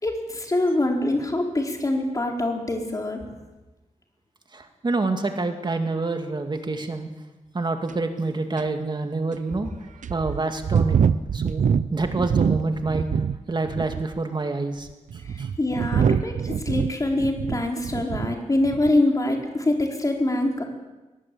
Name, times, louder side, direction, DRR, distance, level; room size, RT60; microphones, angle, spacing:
voice 1, 0.0-3.2 15.6-20.6, left 1 dB, 25° left, 2 dB, 4.2 m, -24 dB
voice 2, 4.5-7.1 7.5-9.7 10.1-11.6 11.9-13.1 13.5-14.9 15.1-15.5, right 3 dB, 35° right, 5 dB, 2.3 m, -27 dB
sound 1, 7.9-8.0 8.6-8.7 9.3-9.4 10.0-13.4 13.7-14.2 14.9-18.4 18.6-19.0, right 7 dB, 90° right, 0.8 m, -24 dB
23.0 x 19.0 x 8.6 m, 1.1 s
wide cardioid pair, 130°, 13 cm